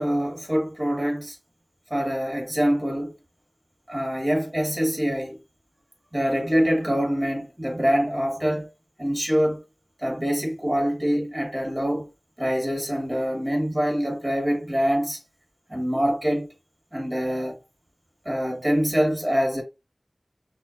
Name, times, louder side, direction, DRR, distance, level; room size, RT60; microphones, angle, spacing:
voice 1, 0.0-1.4 1.9-3.1 3.9-5.4 6.1-8.7 9.0-9.6 10.0-12.1 12.4-15.2 15.7-16.5 16.9-17.6 18.2-19.6, equal, 25° right, 2.3 m, -25 dB
6.1 x 2.5 x 2.8 m
wide cardioid pair, 55°, 0 cm